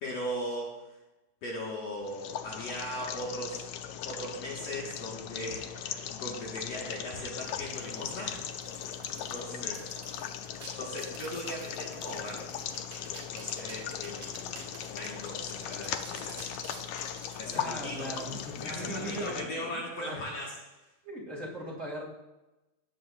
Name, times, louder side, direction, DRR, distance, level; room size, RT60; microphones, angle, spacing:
voice 1, 0.0-0.7 1.4-3.6 4.1-8.4 9.1-9.8 10.8-12.7 13.3-16.7 17.4-18.1 18.5-20.5, equal, 55° left, -4 dB, 2.8 m, -39 dB
sound 1, 2.0-19.5, left 9 dB, 80° left, 1.4 m, -39 dB
sound 2, 7.4-19.3, right 3 dB, 50° right, 3.6 m, -51 dB
voice 2, 9.3-9.9 17.5-20.3 21.0-22.1, equal, 25° right, -4 dB, 2.6 m, -39 dB
17.5 x 9.3 x 2.6 m, 1.0 s
omnidirectional pair, 3.5 m